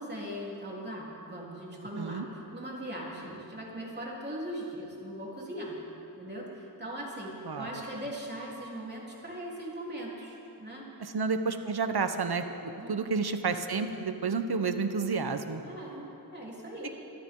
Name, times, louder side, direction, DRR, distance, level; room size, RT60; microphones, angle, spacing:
voice 1, 0.0-5.8 6.2-10.9 12.8-13.2 15.6-16.9, right 1 dB, 25° right, -5 dB, 3.7 m, -40 dB
voice 2, 11.0-15.6, right 4 dB, 75° right, 8 dB, 1.1 m, -30 dB
25.5 x 14.0 x 3.9 m, 3.0 s
wide cardioid pair, 90°, 39 cm